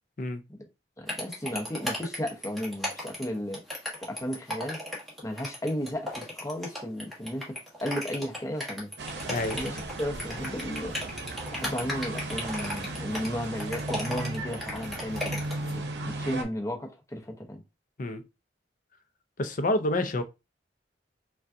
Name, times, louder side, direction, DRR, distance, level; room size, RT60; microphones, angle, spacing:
voice 1, 1.0-3.6 4.0-4.8 5.2-7.5 7.8-8.9 9.5-11.0 11.5-17.6, equal, 20° left, 0.9 m, -34 dB
sound 1, 1.1-15.7, left 1 dB, ahead, 1.3 m, -35 dB
sound 2, 9.0-16.4, right 2 dB, 70° right, 0.7 m, -36 dB
voice 2, 9.3-9.6 18.0-18.2 19.4-20.2, left 1 dB, 50° left, 0.6 m, -28 dB
5.2 x 2.3 x 2.6 m
head